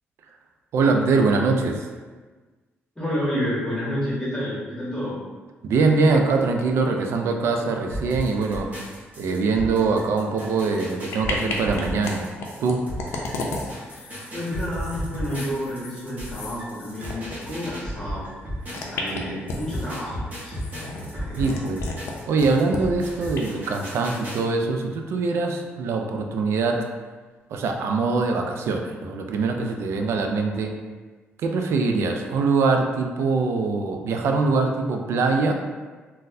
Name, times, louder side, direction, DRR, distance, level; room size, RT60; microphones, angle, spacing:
voice 1, 0.7-1.9 5.6-8.7 9.2-12.3 12.6-12.8 21.4-21.8 22.3-26.8 27.5-30.7 31.4-35.5, right 4 dB, 75° right, 3 dB, 0.4 m, -23 dB
voice 2, 3.0-5.2 13.8-18.2 18.6-20.5 21.1-21.6, equal, 15° left, -8 dB, 1.0 m, -30 dB
sound 1, 7.9-19.1 19.5-24.4, equal, 40° right, 1.0 m, -35 dB
sound 2, 10.6-10.8 11.1-12.1 12.4-17.4 17.7-17.8 18.6-19.9 20.5-22.1 22.4-22.8 23.3-23.4, left 3 dB, 80° left, 0.5 m, -33 dB
4.0 x 2.1 x 2.6 m, 1.4 s
cardioid pair, 120°, 4 cm